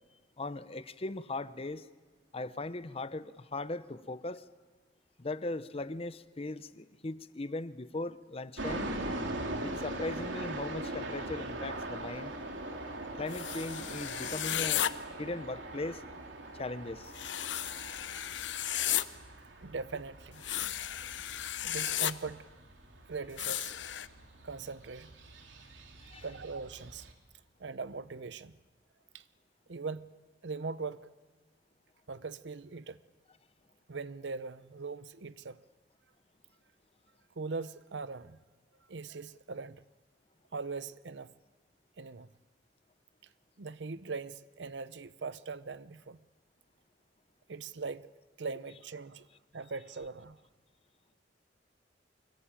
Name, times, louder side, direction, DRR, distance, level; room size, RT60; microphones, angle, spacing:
voice 1, 0.4-1.9 2.3-4.5 5.2-9.0 9.6-12.3 13.2-14.9 15.2-16.0 16.6-17.1 26.0-26.2, left 2 dB, 30° left, 0.8 m, -38 dB
sound 1, 8.6-27.1, right 1 dB, 90° right, 3.0 m, -42 dB
sound 2, 13.3-14.9 17.1-19.0 20.4-22.1 23.4-24.1, left 11 dB, 75° left, 0.9 m, -34 dB
voice 2, 19.6-20.4 21.6-22.5 23.1-23.7 24.4-25.1 26.2-27.1 27.6-28.6 29.1-29.2 29.7-30.1 30.4-31.1 32.1-33.0 33.9-35.6 37.4-38.4 38.9-39.8 40.5-41.3 42.0-42.3 43.6-46.2 47.5-48.1 48.4-49.3 49.5-50.4, right 4 dB, 70° right, 0.7 m, -40 dB
24.5 x 22.0 x 8.9 m
head